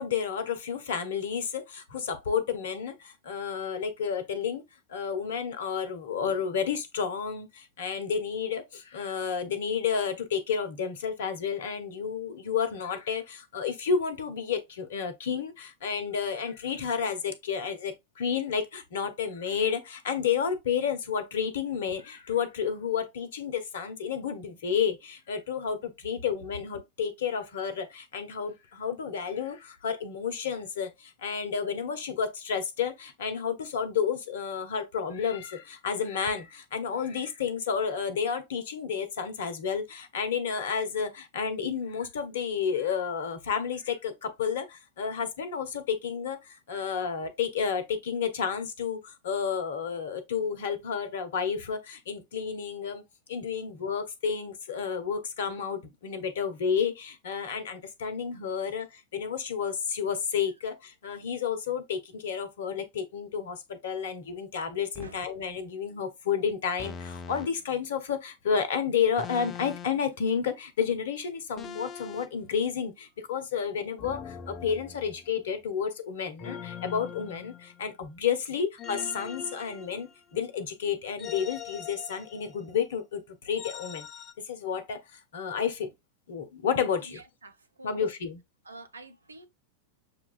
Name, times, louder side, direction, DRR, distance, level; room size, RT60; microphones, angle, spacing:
voice 1, 0.0-4.6 4.9-53.0 53.3-84.1 84.5-85.9 86.3-87.2 87.8-88.4, left 7 dB, 65° left, 0.8 m, -31 dB
sound 1, 64.9-65.2 66.8-67.5 69.2-70.1 71.6-72.3 74.0-75.4 76.4-78.0 78.8-80.4 81.2-82.7 83.6-84.3, left 7 dB, 30° left, 0.5 m, -42 dB
voice 2, 87.0-88.0 88.6-89.5, right 2 dB, 80° right, 0.6 m, -48 dB
6.5 x 2.4 x 2.3 m
figure-of-eight pair, 90°, 0 cm